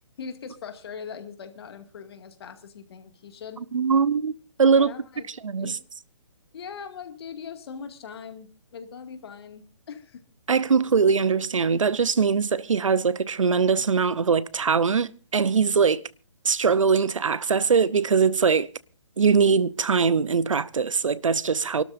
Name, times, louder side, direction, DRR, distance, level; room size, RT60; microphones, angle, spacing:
voice 1, 0.2-3.6 4.8-5.3 5.6-5.8 6.5-10.2, left 6 dB, 50° left, 2.2 m, -40 dB
voice 2, 3.7-4.9 5.4-5.8 10.5-16.0 16.4-18.7 19.2-21.8, right 5 dB, 85° right, 0.8 m, -22 dB
29.0 x 12.5 x 2.6 m
hypercardioid pair, 150°, 16 cm